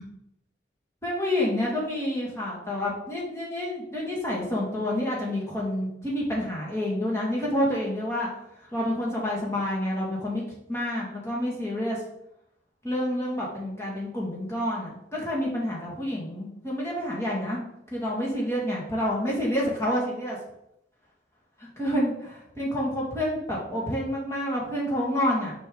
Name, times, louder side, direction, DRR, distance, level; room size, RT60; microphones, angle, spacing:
voice 1, 1.0-8.3 8.7-10.4 10.7-12.0 12.8-17.6 17.9-20.4 21.6-25.5, left 1 dB, 15° left, -4 dB, 2.1 m, -28 dB
6.8 x 5.4 x 3.9 m, 0.79 s
head